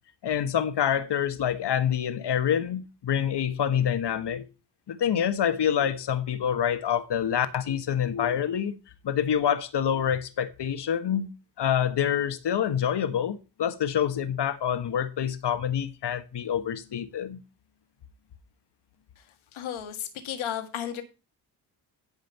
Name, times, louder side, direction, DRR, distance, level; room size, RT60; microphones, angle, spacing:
voice 1, 0.2-4.5 4.9-8.7 9.0-11.3 11.6-17.4, left 9 dB, 55° left, 1.4 m, -26 dB
voice 2, 19.5-21.0, left 10 dB, 75° left, 1.7 m, -34 dB
10.5 x 5.1 x 5.5 m
hypercardioid pair, 45°, 48 cm